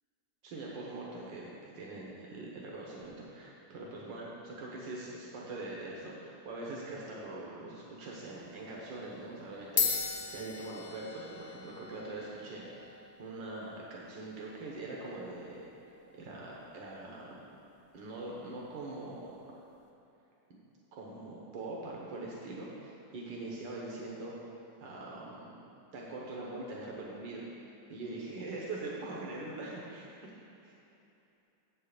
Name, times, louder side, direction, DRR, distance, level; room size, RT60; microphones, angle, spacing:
voice 1, 0.4-15.7 16.1-17.5 17.9-19.4 20.5-20.6 20.9-24.3 24.8-25.6 25.9-30.3 30.6-30.7, right 2 dB, 85° right, -4 dB, 1.8 m, -43 dB
sound 1, 8.1-8.4 9.3-9.4 9.6-18.3, left 6 dB, 55° left, 1.1 m, -40 dB
7.8 x 5.5 x 6.6 m, 2.9 s
omnidirectional pair, 2.0 m